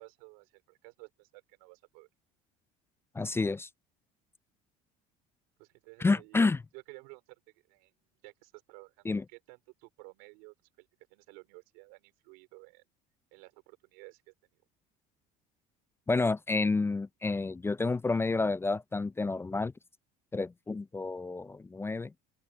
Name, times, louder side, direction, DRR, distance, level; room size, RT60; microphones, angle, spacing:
voice 1, 0.0-2.1 5.6-7.3 7.7-7.9 8.2-12.8 13.3-14.3, right 30 dB, 85° right, 3.2 m, -54 dB
voice 2, 3.1-3.7 6.0-6.6 9.1-9.2 16.1-19.7 20.3-22.1, left 3 dB, 15° left, 0.3 m, -29 dB
open air
supercardioid pair, 90°, 18 cm